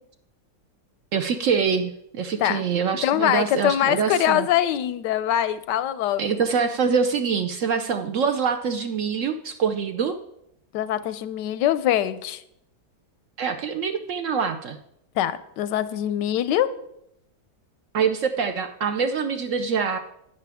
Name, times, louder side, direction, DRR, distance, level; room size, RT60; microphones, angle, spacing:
voice 1, 1.1-4.5 6.2-10.2 13.4-14.8 17.9-20.0, right 6 dB, 65° right, 8 dB, 0.8 m, -25 dB
voice 2, 3.0-6.2 10.7-12.4 15.2-16.7, left 11 dB, 90° left, 15 dB, 1.2 m, -23 dB
11.5 x 9.3 x 3.5 m, 0.79 s
omnidirectional pair, 1.8 m